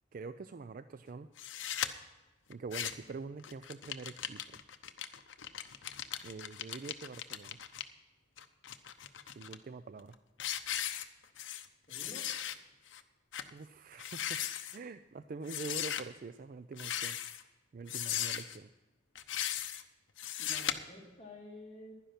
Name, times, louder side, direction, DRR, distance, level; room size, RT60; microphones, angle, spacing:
voice 1, 0.1-1.3 2.5-4.6 6.2-7.6 9.3-10.2 13.5-14.4 14.7-17.2 17.7-18.7, right 4 dB, 45° right, 12 dB, 0.4 m, -45 dB
sound 1, 1.4-1.9 2.5-3.1 3.4-7.8 8.4-9.6 10.0-10.1 10.4-11.7 11.9-12.6 12.9-13.0 13.3-13.5 13.9-14.8 15.5-16.0 16.7-17.4 17.9-18.6 19.2-19.8 20.2-20.7, left 10 dB, 75° left, 0.7 m, -38 dB
voice 2, 11.9-12.3 18.2-18.3 20.4-21.9, left 1 dB, 30° left, -2 dB, 2.7 m, -50 dB
11.5 x 10.5 x 5.8 m, 1.2 s
head